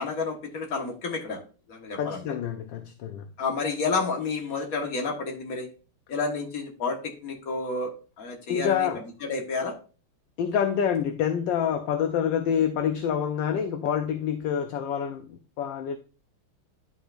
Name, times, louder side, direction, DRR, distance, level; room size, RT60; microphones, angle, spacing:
voice 1, 0.0-1.4 1.7-2.2 3.4-5.7 6.1-7.9 8.2-8.9 9.2-9.7, left 4 dB, 45° left, 1.7 m, -30 dB
voice 2, 2.0-3.3 8.5-9.0 10.4-16.0, left 8 dB, 70° left, 1.2 m, -27 dB
10.5 x 5.7 x 2.5 m
omnidirectional pair, 2.3 m